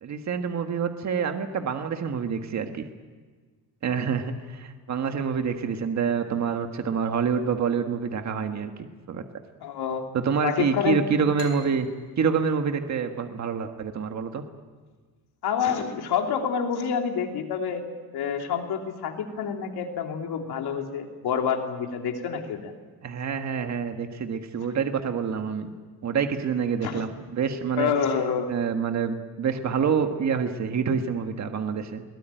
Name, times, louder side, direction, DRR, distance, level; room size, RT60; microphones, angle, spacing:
voice 1, 0.0-2.9 3.8-9.2 10.1-11.9 12.2-14.4 23.0-25.7 26.0-27.9 28.5-32.0, right 6 dB, 45° right, 6 dB, 1.6 m, -27 dB
voice 2, 9.6-10.1 10.4-11.0 15.4-17.8 18.1-22.7 26.8-27.0 27.8-28.5, left 7 dB, 65° left, 3 dB, 3.2 m, -27 dB
sound 1, 11.4-14.8, left 4 dB, 35° left, 3.8 m, -47 dB
22.5 x 18.5 x 9.1 m, 1.4 s
cardioid pair, 150°, 40 cm